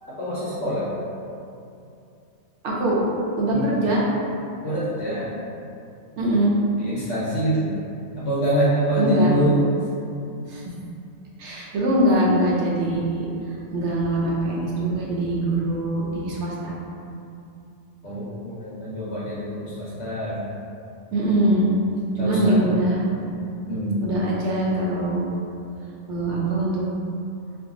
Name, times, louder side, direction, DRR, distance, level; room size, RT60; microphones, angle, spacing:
voice 1, 0.0-0.8 3.5-3.7 4.6-5.3 6.7-7.7 8.1-9.6 18.0-20.4 22.2-22.6 23.7-24.0, right 1 dB, 65° left, -9 dB, 1.0 m, -25 dB
voice 2, 2.6-3.0 3.4-4.0 6.2-6.5 9.0-9.3 10.5-10.6 11.4-13.3 13.7-16.7 21.1-21.7 22.2-23.3 24.0-25.3 26.1-26.8, right 1 dB, 65° right, -4 dB, 0.8 m, -22 dB
2.6 x 2.3 x 3.7 m, 2.6 s
omnidirectional pair, 1.4 m